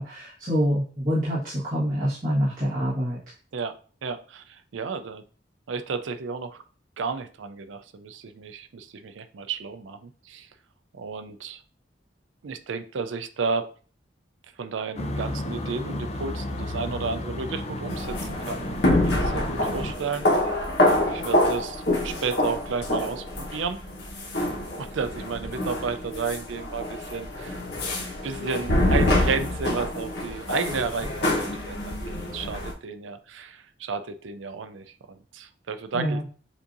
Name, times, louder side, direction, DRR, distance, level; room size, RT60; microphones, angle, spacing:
voice 1, 0.0-3.2 35.9-36.2, equal, 45° right, -10 dB, 1.6 m, -26 dB
voice 2, 3.5-5.2 5.7-6.6 7.0-10.5 10.9-11.6 12.4-13.7 14.6-20.4 21.1-23.8 24.8-27.6 28.2-36.3, right 5 dB, 85° right, 11 dB, 0.4 m, -32 dB
sound 1, 15.0-19.9, left 1 dB, 35° left, 0.5 m, -33 dB
sound 2, 17.9-32.7, left 1 dB, 60° left, 1.1 m, -26 dB
7.1 x 2.7 x 2.6 m, 0.40 s
head